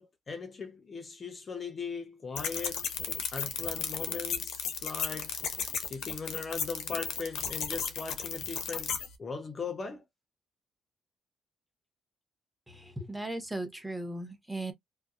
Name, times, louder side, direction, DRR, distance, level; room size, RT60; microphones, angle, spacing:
voice 1, 0.0-2.9 3.3-5.3 5.8-8.9 9.2-10.0, left 5 dB, 40° left, 0.6 m, -39 dB
sound 1, 2.4-9.1, left 7 dB, 75° left, 0.6 m, -34 dB
voice 2, 12.7-14.7, right 1 dB, 5° right, 0.9 m, -37 dB
2.6 x 2.1 x 2.3 m
cardioid pair, 90°, 0 cm